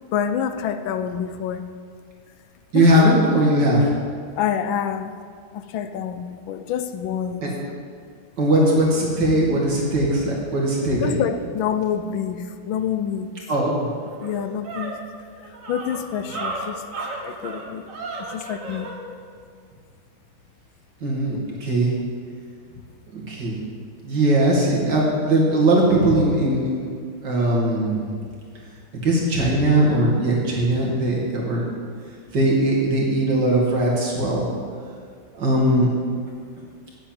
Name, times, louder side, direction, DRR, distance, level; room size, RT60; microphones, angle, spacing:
voice 1, 0.0-1.6 2.7-3.0 4.4-5.1 5.5-7.5 11.0-13.3 14.2-15.0 15.7-16.8 17.2-17.9 18.2-18.9, left 8 dB, 85° left, 10 dB, 1.5 m, -27 dB
voice 2, 2.7-3.9 7.4-7.5 8.4-11.2 13.5-13.9 21.0-21.9 23.1-23.6 24.0-26.9 27.2-28.1 29.0-31.6 32.3-34.5 35.3-35.9, right 1 dB, 60° right, -4 dB, 3.0 m, -19 dB
sound 1, 14.0-19.0, right 2 dB, 45° right, 1.8 m, -33 dB
9.0 x 7.7 x 8.9 m, 2.1 s
omnidirectional pair, 2.1 m